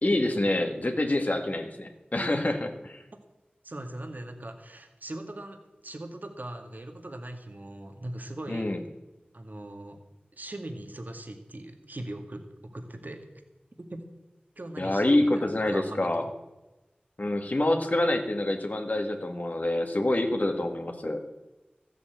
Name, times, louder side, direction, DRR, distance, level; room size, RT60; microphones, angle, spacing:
voice 1, 0.0-3.0 8.5-8.8 14.8-16.3 17.2-21.2, left 1 dB, 50° left, 5 dB, 1.9 m, -26 dB
voice 2, 3.6-8.7 9.3-10.0 10.3-13.3 13.9-14.0 14.6-15.3 15.7-16.3, right 1 dB, 60° right, 5 dB, 1.9 m, -40 dB
14.0 x 8.4 x 8.2 m, 1.1 s
wide cardioid pair, 40°, 3 cm